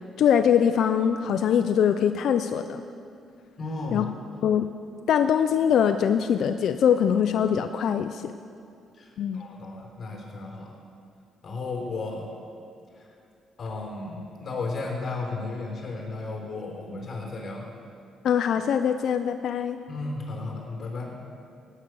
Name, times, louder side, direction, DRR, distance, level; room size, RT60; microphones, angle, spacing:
voice 1, 0.2-2.8 3.9-4.1 4.4-4.7 5.1-8.3 9.2-9.4 18.2-19.8, left 8 dB, 70° left, 8 dB, 0.5 m, -22 dB
voice 2, 3.6-4.1 8.9-10.7 11.4-12.3 13.0-13.1 13.6-17.7 19.9-21.2, left 3 dB, 45° left, 0 dB, 3.8 m, -34 dB
16.5 x 9.5 x 6.3 m, 2.4 s
cardioid pair, 90°, 0 cm